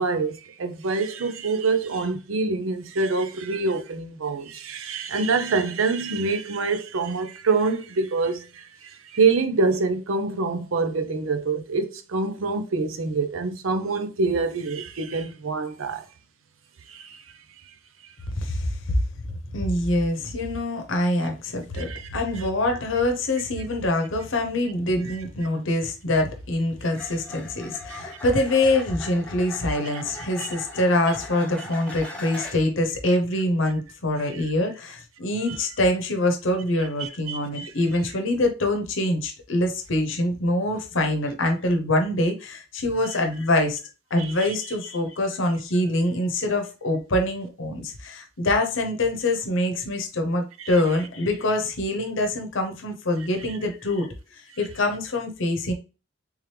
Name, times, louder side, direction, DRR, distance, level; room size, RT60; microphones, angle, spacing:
voice 1, 0.0-16.0 16.9-17.2 21.8-22.1 28.1-28.2 29.8-30.0 30.4-30.5 37.0-37.7 44.2-44.3 50.6-50.8, right 4 dB, 85° right, 0.6 m, -26 dB
voice 2, 18.4-19.0 19.5-43.8 44.1-54.1 54.3-55.7, left 1 dB, 70° left, 0.8 m, -25 dB
sound 1, 24.5-24.6 26.8-32.8 36.5-36.7, left 2 dB, 5° left, 0.8 m, -40 dB
3.6 x 3.1 x 3.2 m
head